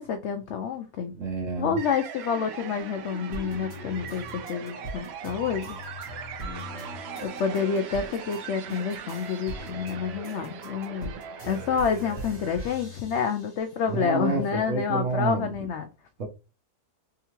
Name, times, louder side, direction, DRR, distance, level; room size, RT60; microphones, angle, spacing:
voice 1, 0.0-1.1 1.6-5.8 7.2-11.1 11.5-15.9, left 6 dB, 75° left, 0.6 m, -28 dB
voice 2, 1.1-1.8 13.8-15.5 16.2-16.3, right 4 dB, 55° right, 1.3 m, -29 dB
sound 1, 1.8-12.9, right 7 dB, 90° right, 0.5 m, -40 dB
sound 2, 3.3-8.4 8.7-13.9 14.4-15.3, left 1 dB, 30° left, 1.6 m, -41 dB
sound 3, 6.4-10.6, left 1 dB, 25° right, 2.0 m, -48 dB
3.6 x 3.2 x 3.0 m
omnidirectional pair, 1.7 m